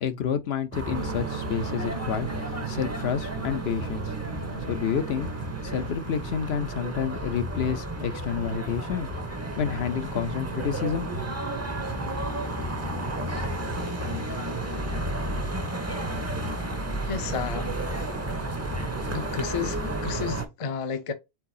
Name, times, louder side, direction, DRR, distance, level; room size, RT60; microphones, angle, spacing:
voice 1, 0.0-4.1 4.7-9.1 9.6-11.1, left 8 dB, 70° left, 0.9 m, -29 dB
sound 1, 0.7-20.5, right 1 dB, 15° right, 0.6 m, -32 dB
sound 2, 1.0-6.0, right 7 dB, 70° right, 0.8 m, -38 dB
voice 2, 17.1-17.8 19.1-21.1, left 6 dB, 40° left, 0.5 m, -32 dB
4.6 x 3.9 x 2.7 m
omnidirectional pair, 1.1 m